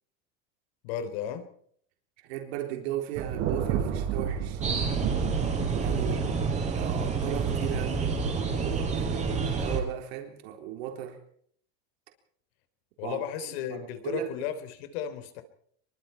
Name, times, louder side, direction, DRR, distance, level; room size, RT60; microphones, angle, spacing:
voice 1, 0.8-1.5 6.2-6.5 13.0-15.4, left 8 dB, 70° left, 3.7 m, -35 dB
voice 2, 2.2-4.6 5.8-6.3 6.7-11.2 13.0-13.2 13.7-14.3, right 12 dB, 75° right, 4.0 m, -37 dB
Thunder, 3.2-8.5, right 8 dB, 55° right, 6.1 m, -32 dB
sound 1, 4.6-9.8, right 4 dB, 20° right, 4.9 m, -29 dB
25.5 x 23.5 x 4.5 m
supercardioid pair, 145°, 32 cm